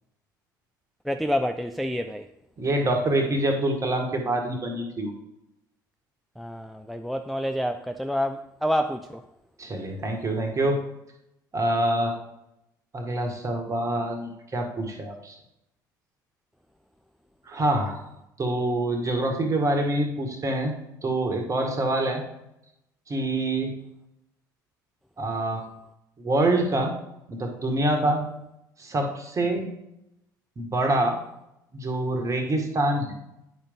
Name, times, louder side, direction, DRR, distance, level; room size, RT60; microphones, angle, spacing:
voice 1, 1.1-2.3 6.4-9.2 28.0-28.2, equal, ahead, 0.4 m, -28 dB
voice 2, 2.6-5.1 9.6-10.8 11.5-12.1 12.9-15.4 17.4-18.0 18.4-20.7 21.0-22.2 23.1-23.7 25.2-25.7 26.2-26.9 27.3-28.2 28.8-29.7 30.6-31.2 31.7-33.1, right 1 dB, 30° right, 1.7 m, -25 dB
10.0 x 5.1 x 3.6 m
figure-of-eight pair, 60°, 11 cm